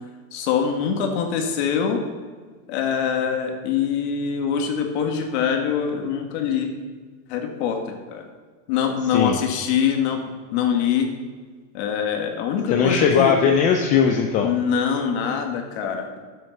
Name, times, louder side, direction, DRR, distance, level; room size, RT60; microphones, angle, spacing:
voice 1, 0.3-2.0 2.7-6.7 7.3-8.2 8.7-10.2 10.5-11.1 11.7-13.4 14.4-16.1, left 7 dB, 55° left, 3 dB, 1.9 m, -24 dB
voice 2, 12.7-14.5, left 6 dB, 20° left, 3 dB, 0.4 m, -19 dB
10.5 x 7.7 x 5.3 m, 1.5 s
supercardioid pair, 160°, 39 cm